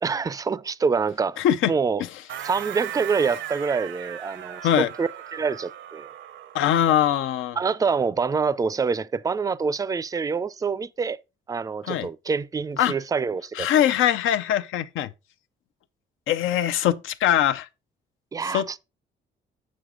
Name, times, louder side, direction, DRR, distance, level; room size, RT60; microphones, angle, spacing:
voice 1, 0.0-1.4 1.7-2.0 2.4-6.1 7.6-11.2 11.5-13.7 18.3-18.8, right 5 dB, 20° right, 0.4 m, -26 dB
voice 2, 1.4-1.7 4.6-4.9 6.5-7.6 11.8-12.1 12.8-12.9 13.6-15.1 16.3-17.7 18.5-18.8, left 10 dB, 80° left, 0.6 m, -22 dB
sound 1, 2.3-6.7, right 10 dB, 70° right, 0.7 m, -37 dB
7.1 x 6.3 x 3.7 m
cardioid pair, 90°, 20 cm